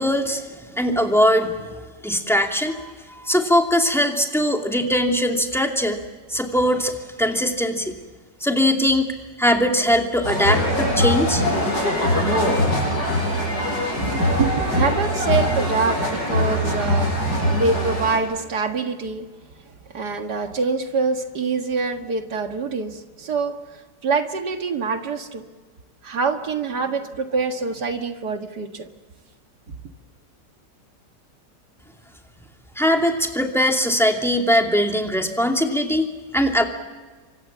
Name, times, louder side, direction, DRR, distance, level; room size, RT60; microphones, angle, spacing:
voice 1, 0.0-1.6 2.0-6.0 6.3-7.9 8.4-9.1 9.4-11.4 32.8-36.1 36.3-36.6, equal, ahead, 2 dB, 2.5 m, -21 dB
sound 1, 10.2-18.2, equal, 60° left, 8.2 m, -22 dB
voice 2, 13.9-17.2 17.5-19.3 19.6-25.5 26.0-28.9, right 4 dB, 65° right, 6 dB, 2.3 m, -25 dB
28.5 x 25.0 x 7.4 m, 1.3 s
omnidirectional pair, 1.9 m